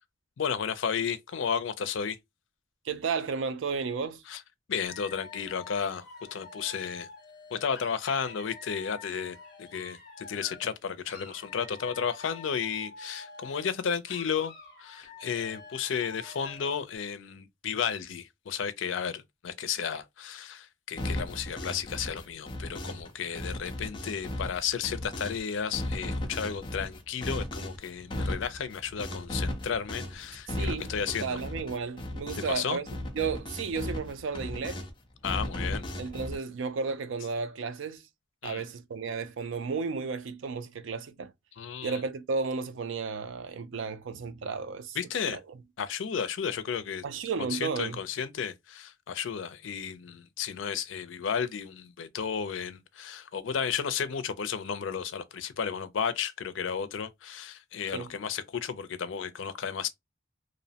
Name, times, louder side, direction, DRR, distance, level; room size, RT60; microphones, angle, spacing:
voice 1, 0.4-2.2 4.3-4.4 4.7-6.0 6.3-7.1 7.5-14.5 14.8-31.4 32.5-32.8 35.2-35.8 38.4-38.6 41.6-42.0 44.9-45.4 45.8-47.0 47.5-59.9, left 7 dB, 85° left, 0.4 m, -33 dB
voice 2, 2.9-4.2 30.5-32.9 33.1-34.8 36.0-38.0 38.4-41.3 41.8-45.0 45.3-45.6 47.0-48.0 57.9-58.1, right 5 dB, 85° right, 0.4 m, -33 dB
Dog / Alarm, 4.9-10.8 11.0-13.8 14.0-16.8, left 3 dB, 55° left, 0.8 m, -48 dB
sound 1, 21.0-23.1 23.3-25.4 25.7-32.6 32.9-34.9 35.2-36.4, left 1 dB, 25° left, 0.5 m, -36 dB
2.6 x 2.1 x 2.7 m
head